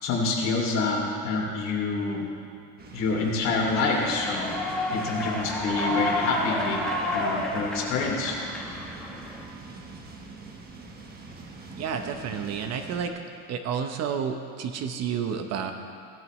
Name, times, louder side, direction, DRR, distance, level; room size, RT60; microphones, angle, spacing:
voice 1, 0.0-2.3 2.9-4.6 4.9-6.8 7.1-8.4, left 3 dB, 45° left, -2 dB, 2.8 m, -27 dB
sound 1, 2.8-13.1, right 3 dB, 25° right, 1.2 m, -43 dB
Human voice / Clapping / Cheering, 3.4-9.4, left 1 dB, ahead, 1.2 m, -31 dB
voice 2, 11.8-13.1 13.5-15.7, right 7 dB, 45° right, 6 dB, 0.8 m, -30 dB
17.5 x 12.0 x 3.1 m, 2.4 s
cardioid pair, 150°, 37 cm